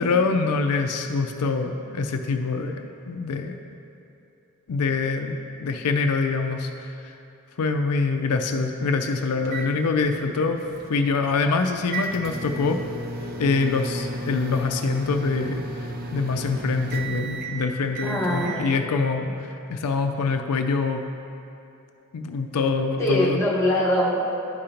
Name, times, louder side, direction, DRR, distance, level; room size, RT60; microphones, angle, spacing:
voice 1, 0.0-3.5 4.7-7.1 7.6-10.6 10.9-12.8 13.4-21.0 22.1-23.4, left 4 dB, 85° left, 5 dB, 0.4 m, -25 dB
sound 1, 9.4-18.6, right 2 dB, 45° right, 0.5 m, -35 dB
voice 2, 18.0-18.7 23.0-24.2, left 1 dB, 15° left, -7 dB, 1.2 m, -22 dB
11.0 x 5.0 x 2.9 m, 2.7 s
head